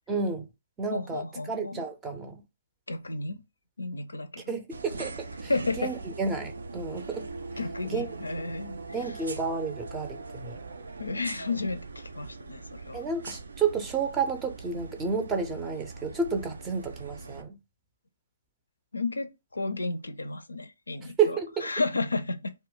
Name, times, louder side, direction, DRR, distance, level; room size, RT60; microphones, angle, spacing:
voice 1, 0.1-0.5 0.8-2.4 4.5-5.5 5.8-7.3 7.9-8.1 8.9-10.6 12.9-17.6 21.2-21.7, right 5 dB, 15° right, 0.5 m, -31 dB
voice 2, 0.9-1.8 2.9-3.4 3.8-4.4 5.5-5.9 7.6-8.8 9.0-9.1 11.0-13.1 18.9-22.5, left 3 dB, 85° left, 0.4 m, -32 dB
sound 1, 4.7-17.4, right 3 dB, 70° right, 0.4 m, -41 dB
2.1 x 2.1 x 3.7 m
figure-of-eight pair, 135°, 0 cm